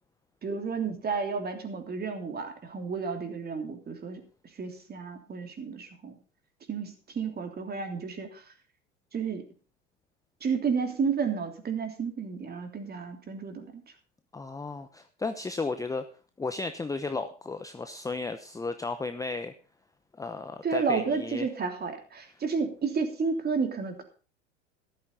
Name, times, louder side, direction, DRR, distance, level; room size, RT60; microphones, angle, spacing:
voice 1, 0.4-4.2 4.6-6.2 6.7-8.4 9.1-9.4 10.4-13.7 20.6-24.0, right 5 dB, 25° right, 6 dB, 3.2 m, -31 dB
voice 2, 14.3-16.0 16.4-19.5 20.2-21.5, left 3 dB, 10° left, 9 dB, 0.8 m, -34 dB
13.5 x 13.0 x 4.1 m, 0.37 s
hypercardioid pair, 85°, 37 cm